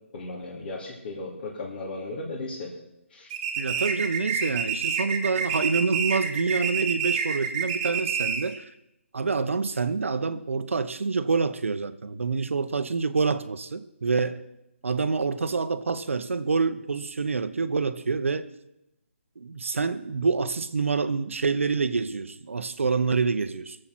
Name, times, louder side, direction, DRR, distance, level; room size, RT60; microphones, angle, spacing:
voice 1, 0.1-2.7 3.1-3.3, left 2 dB, 45° left, 2.9 m, -36 dB
sound 1, 3.3-8.6, right 6 dB, 25° right, 1.4 m, -28 dB
voice 2, 3.6-8.6 9.1-14.4 14.8-18.5 19.4-23.8, right 4 dB, 75° right, 0.9 m, -27 dB
21.0 x 7.8 x 6.1 m
hypercardioid pair, 165°, 7 cm